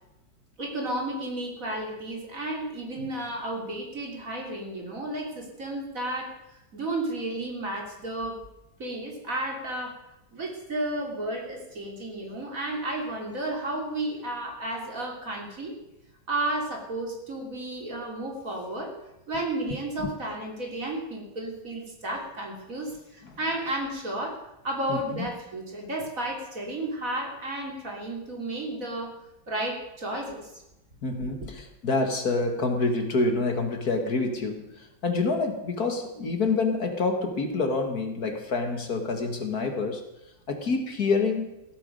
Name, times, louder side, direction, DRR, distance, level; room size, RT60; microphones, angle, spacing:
voice 1, 0.6-6.3 6.7-8.4 8.8-10.0 10.3-15.8 16.3-18.9 19.3-29.2 29.5-30.6 31.2-31.3, right 1 dB, 45° right, 0 dB, 3.6 m, -32 dB
voice 2, 24.9-25.3 31.0-40.0 40.5-41.6, left 3 dB, 55° left, 5 dB, 2.1 m, -27 dB
16.0 x 14.0 x 5.3 m, 0.88 s
omnidirectional pair, 2.0 m